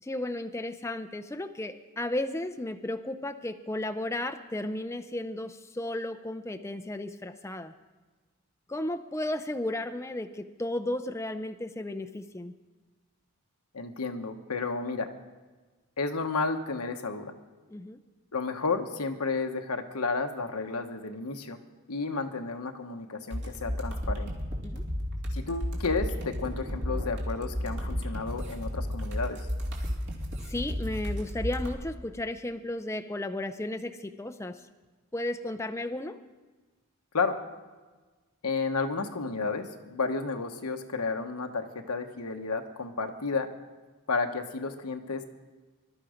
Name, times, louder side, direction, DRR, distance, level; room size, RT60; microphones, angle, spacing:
voice 1, 0.0-7.7 8.7-12.5 17.7-18.0 24.6-24.8 30.5-34.6 35.1-36.2, left 1 dB, 10° left, 8 dB, 0.5 m, -34 dB
voice 2, 13.7-15.1 16.0-17.3 18.3-21.6 21.9-24.3 25.3-29.4 37.1-37.3 38.4-43.5 44.1-45.2, left 4 dB, 90° left, 5 dB, 1.2 m, -32 dB
sound 1, 23.3-31.7, equal, 55° right, 2.7 m, -33 dB
20.5 x 12.5 x 5.1 m, 1.3 s
head